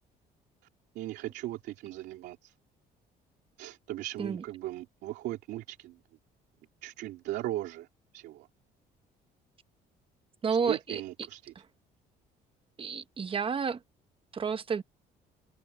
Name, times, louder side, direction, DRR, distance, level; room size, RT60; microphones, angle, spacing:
voice 1, 0.9-2.5 3.6-6.0 6.8-7.9 8.1-8.5 10.7-11.5, right 15 dB, 85° right, 2.7 m, -38 dB
voice 2, 10.4-11.3 12.8-13.8 14.3-14.8, right 6 dB, 30° right, 1.2 m, -31 dB
open air
cardioid pair, 110°, 17 cm